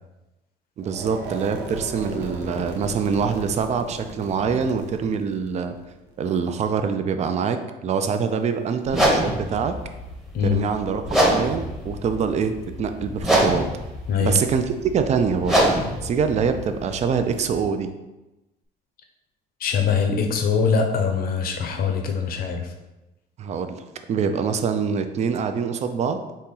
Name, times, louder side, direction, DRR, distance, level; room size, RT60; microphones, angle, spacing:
voice 1, 0.8-5.8 6.2-9.7 10.4-13.7 14.2-15.7 16.0-17.9 23.4-23.8 24.1-26.2, right 6 dB, 40° right, 8 dB, 0.4 m, -24 dB
sound 1, 0.8-6.8, right 3 dB, 80° right, 0.8 m, -36 dB
sound 2, 8.9-17.6, equal, ahead, 0.8 m, -25 dB
voice 2, 14.1-14.4 19.6-22.7, left 6 dB, 60° left, 4 dB, 0.7 m, -22 dB
4.3 x 2.9 x 3.7 m, 1.0 s
cardioid pair, 110°, 17 cm